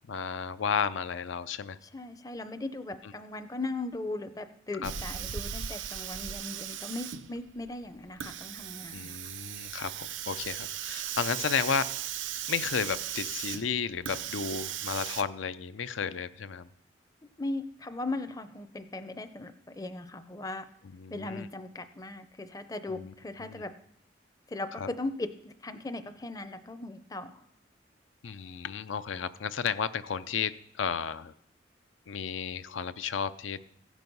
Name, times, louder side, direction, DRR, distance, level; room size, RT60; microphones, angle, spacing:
voice 1, 0.1-1.8 4.8-4.9 8.9-11.9 12.5-16.7 20.9-21.5 22.9-23.1 23.4-23.6 24.8-24.9 28.2-31.3 32.1-33.6, left 6 dB, 90° left, 14 dB, 0.5 m, -33 dB
voice 2, 1.8-9.2 17.4-20.7 21.1-23.8 24.5-27.4, left 2 dB, 20° left, 10 dB, 0.5 m, -38 dB
Hiss, 4.8-15.2, right 10 dB, 85° right, 0.6 m, -37 dB
15.5 x 6.1 x 5.3 m, 0.69 s
head